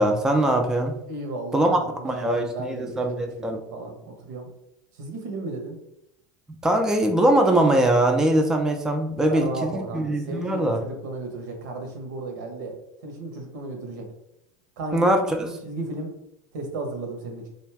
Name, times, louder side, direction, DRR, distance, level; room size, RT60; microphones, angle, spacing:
voice 1, 0.0-1.0 1.5-3.6 6.6-10.8 14.9-15.4, right 1 dB, 5° right, 3 dB, 0.4 m, -22 dB
voice 2, 1.1-4.5 5.0-5.8 9.3-12.7 13.0-14.0 14.8-15.1 15.4-16.2 16.5-17.5, right 2 dB, 75° right, 3 dB, 0.8 m, -34 dB
2.5 x 2.2 x 3.3 m, 0.79 s
hypercardioid pair, 100°, 10 cm